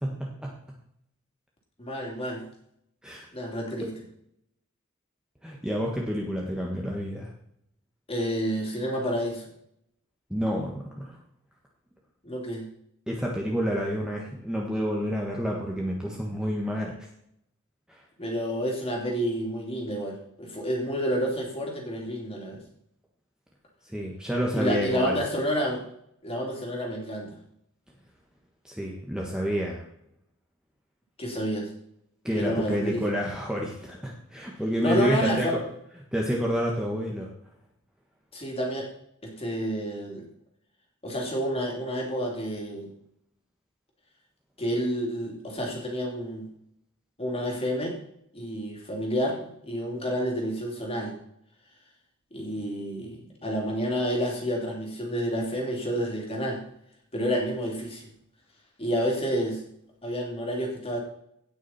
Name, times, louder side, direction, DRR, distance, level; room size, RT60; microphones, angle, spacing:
voice 1, 0.0-0.6 3.0-3.3 5.4-7.3 10.3-11.2 13.1-16.9 17.9-18.0 23.8-25.2 28.6-29.8 32.2-35.6 36.1-37.3, equal, 5° right, -2 dB, 1.4 m, -29 dB
voice 2, 1.8-2.4 3.3-3.9 8.1-9.5 12.2-12.6 18.2-22.6 24.5-25.8 26.2-27.4 31.2-31.7 32.3-33.0 34.8-35.5 38.3-38.9 39.2-40.2 41.0-42.9 44.6-46.5 47.2-48.0 48.3-51.2 52.3-56.6 57.1-58.1 58.8-59.6 60.0-61.0, equal, 25° left, 0 dB, 3.0 m, -29 dB
17.0 x 6.2 x 4.3 m, 0.73 s
head